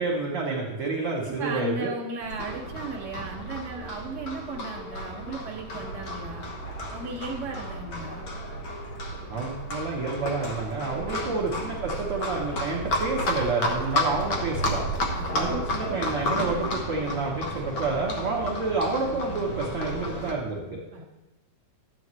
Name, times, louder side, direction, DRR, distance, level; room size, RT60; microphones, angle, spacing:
voice 1, 0.0-1.9 9.3-14.8 15.3-20.8, right 3 dB, 65° right, -2 dB, 1.5 m, -29 dB
voice 2, 1.2-6.5 6.9-8.2 11.1-11.5 15.1-15.6 20.9-21.0, right 3 dB, 35° right, -3 dB, 1.3 m, -36 dB
Livestock farm animals working animals, 2.2-20.3, left 1 dB, 70° left, 1.2 m, -32 dB
12.5 x 8.5 x 3.2 m, 1.1 s
omnidirectional pair, 3.9 m